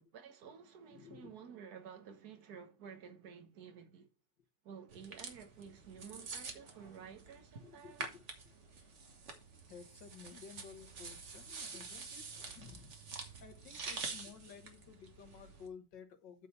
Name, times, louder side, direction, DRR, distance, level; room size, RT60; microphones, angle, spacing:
voice 1, 0.0-4.1 4.6-8.1, right 7 dB, 60° right, 1.7 m, -52 dB
voice 2, 0.9-1.3 7.6-8.6 9.7-12.9 13.4-16.5, left 6 dB, 90° left, 2.0 m, -54 dB
sound 1, 4.9-15.7, right 4 dB, 45° right, 1.5 m, -47 dB
8.5 x 4.0 x 6.5 m
omnidirectional pair, 1.9 m